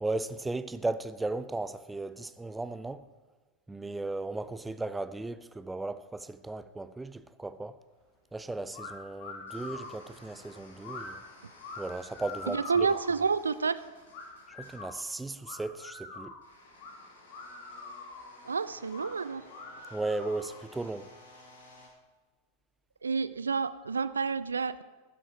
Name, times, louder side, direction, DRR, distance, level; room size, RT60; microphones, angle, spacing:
voice 1, 0.0-3.0 3.7-7.8 8.3-11.2 11.8-12.9 14.5-16.3 19.9-21.1, right 2 dB, 10° right, 0.5 m, -36 dB
sound 1, 7.8-21.9, left 2 dB, 65° left, 3.7 m, -56 dB
sound 2, 8.7-8.9 9.2-10.0 10.8-11.1 11.6-13.1 14.1-14.9 15.4-16.4 16.8-16.9 17.3-18.3 18.9-19.1 19.5-20.6, left 3 dB, 45° left, 2.9 m, -44 dB
voice 2, 12.5-13.8 18.5-19.4 23.0-24.8, right 5 dB, 75° right, 0.4 m, -29 dB
12.0 x 11.0 x 4.6 m
figure-of-eight pair, 90°, 0 cm